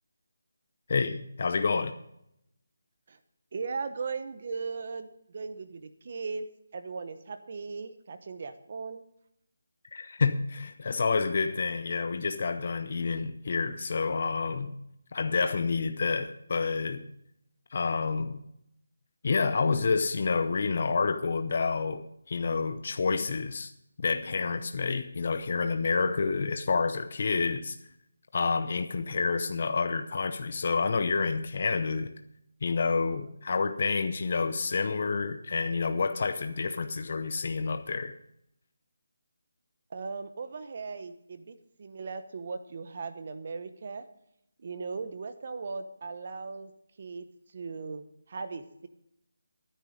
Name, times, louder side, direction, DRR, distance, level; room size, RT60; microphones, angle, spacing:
voice 1, 0.9-1.9 9.9-14.7 15.1-17.0 17.7-18.4 19.2-23.7 24.0-27.8 28.3-32.1 32.6-38.1, left 4 dB, 45° left, 9 dB, 0.7 m, -28 dB
voice 2, 3.5-6.5 6.7-9.0 39.9-44.0 44.6-46.7 47.0-47.3 47.5-48.9, right 4 dB, 40° right, 10 dB, 0.9 m, -38 dB
11.5 x 10.0 x 5.1 m, 0.79 s
figure-of-eight pair, 170°, 0 cm